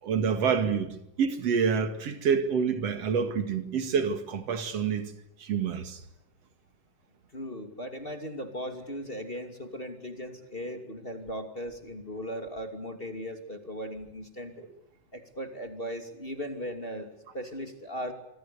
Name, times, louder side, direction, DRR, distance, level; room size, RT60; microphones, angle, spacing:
voice 1, 0.0-5.1 5.4-6.0, right 6 dB, 50° right, 3.0 m, -27 dB
voice 2, 7.3-14.6 15.1-18.1, equal, 20° left, 2.5 m, -38 dB
26.5 x 24.5 x 6.9 m
omnidirectional pair, 3.7 m